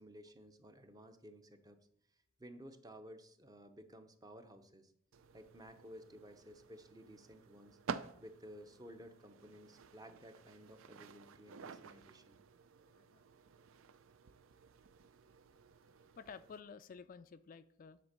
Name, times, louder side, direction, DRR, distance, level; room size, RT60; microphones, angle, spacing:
voice 1, 0.0-1.8 2.4-4.9 5.3-7.8 8.2-12.4, equal, 20° right, 8 dB, 0.7 m, -55 dB
sound 1, 5.1-16.6, right 5 dB, 75° right, 0.5 m, -51 dB
voice 2, 12.9-13.2 16.2-18.0, left 5 dB, 40° left, 11 dB, 0.3 m, -53 dB
10.0 x 4.3 x 6.6 m, 0.70 s
head